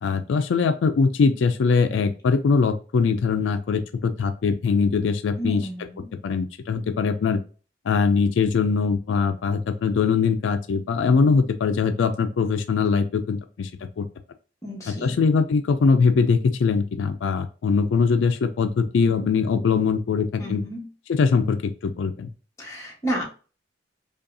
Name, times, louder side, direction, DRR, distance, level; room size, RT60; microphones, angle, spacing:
voice 1, 0.0-5.6 6.2-7.4 7.9-14.0 14.9-20.6 21.1-22.3, left 5 dB, 80° left, 8 dB, 0.4 m, -22 dB
voice 2, 5.4-6.1 14.6-15.1 20.4-20.9 22.6-23.2, right 1 dB, 15° left, -3 dB, 1.3 m, -31 dB
5.1 x 2.3 x 2.7 m, 0.36 s
head